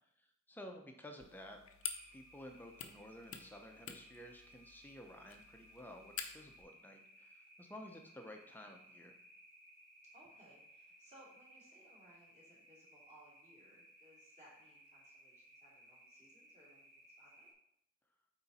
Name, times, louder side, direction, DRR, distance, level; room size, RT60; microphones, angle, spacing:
voice 1, 0.5-1.6 2.1-9.2, equal, 10° left, 3 dB, 0.7 m, -53 dB
sound 1, 1.2-6.6, left 8 dB, 70° left, 0.7 m, -49 dB
sound 2, 1.8-17.5, right 1 dB, 80° right, 2.3 m, -62 dB
voice 2, 10.1-17.5, right 1 dB, 35° right, -5 dB, 2.8 m, -64 dB
8.6 x 3.9 x 4.2 m, 0.74 s
head